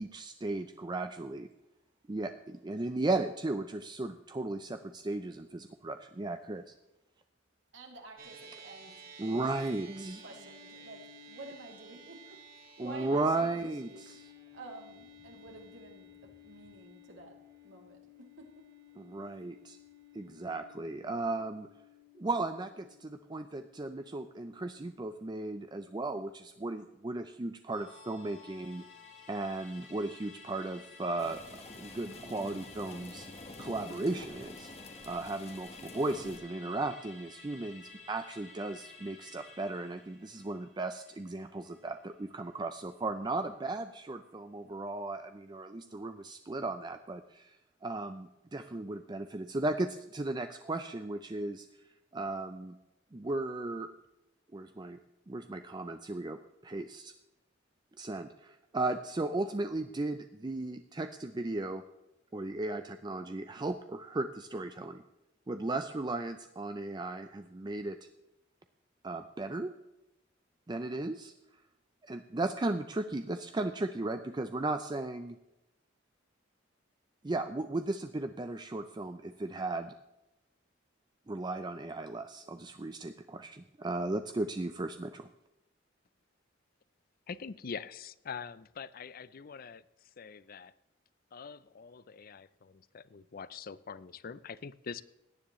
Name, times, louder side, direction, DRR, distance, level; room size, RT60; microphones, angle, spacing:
voice 1, 0.0-1.5 2.1-6.7 9.2-10.2 12.8-13.9 19.0-19.8 20.1-21.7 22.2-28.8 29.3-33.3 33.6-34.7 35.0-47.6 47.8-51.7 52.1-52.7 53.1-53.9 54.5-55.0 55.3-57.1 58.0-61.8 62.3-65.0 65.5-68.0 69.0-69.7 70.7-71.3 72.0-75.4 77.2-79.9 81.3-85.3, right 2 dB, 25° right, 8 dB, 0.5 m, -36 dB
voice 2, 7.7-9.6 10.2-14.2 14.5-18.6, right 2 dB, 75° right, 1 dB, 2.8 m, -51 dB
sound 1, 8.2-26.7, equal, 50° right, 2.1 m, -55 dB
Musical instrument, 27.7-42.4 42.7-42.8, left 4 dB, 70° left, 3.8 m, -53 dB
sound 2, 31.2-36.4, left 2 dB, 35° left, 1.1 m, -48 dB
voice 3, 87.3-90.7 91.3-95.0, left 6 dB, 50° left, 18 dB, 0.5 m, -44 dB
17.0 x 10.0 x 3.1 m, 0.93 s
head